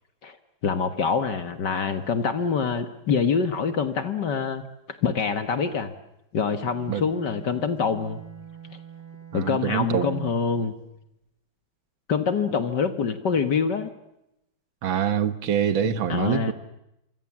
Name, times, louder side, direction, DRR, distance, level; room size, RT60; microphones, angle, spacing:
voice 1, 0.6-4.6 5.0-5.9 6.3-8.2 9.3-10.8 12.1-13.9 15.8-16.5, left 5 dB, 55° left, 1.9 m, -25 dB
Bowed string instrument, 6.4-10.7, right 9 dB, 90° left, 6.8 m, -46 dB
voice 2, 9.3-10.3 14.8-16.5, right 9 dB, 70° right, 1.9 m, -25 dB
27.0 x 25.0 x 7.3 m
omnidirectional pair, 2.4 m